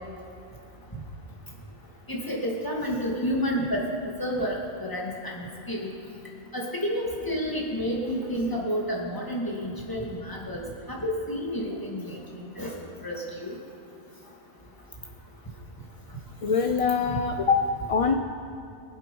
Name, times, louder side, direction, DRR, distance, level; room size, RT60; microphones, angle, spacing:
voice 1, 2.1-3.8 4.2-5.9 6.5-10.6 10.9-12.2 12.6-13.5, equal, 15° left, -3 dB, 2.3 m, -30 dB
voice 2, 16.4-17.6 17.9-18.1, left 6 dB, 40° left, 5 dB, 0.5 m, -23 dB
23.5 x 8.0 x 5.5 m, 2.6 s
omnidirectional pair, 1.2 m